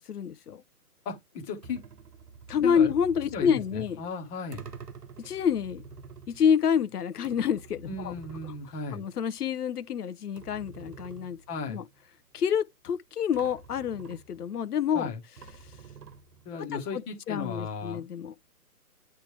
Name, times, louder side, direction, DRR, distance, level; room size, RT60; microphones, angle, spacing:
voice 1, 0.1-0.6 2.5-4.0 5.2-5.8 6.3-8.1 8.9-11.4 11.7-11.8 12.3-15.1 16.7-17.0 17.3-18.3, left 7 dB, 80° left, 0.7 m, -28 dB
voice 2, 1.0-1.8 2.6-2.9 3.3-4.7 7.9-9.0 11.5-11.8 14.9-15.2 16.4-18.0, left 4 dB, 15° left, 1.1 m, -35 dB
sound 1, 1.6-9.5 9.8-9.9 10.4-12.0 13.0-13.1 13.3-14.7 15.4-16.7, right 5 dB, 85° right, 1.4 m, -48 dB
9.0 x 3.3 x 3.3 m
hypercardioid pair, 150°, 45 cm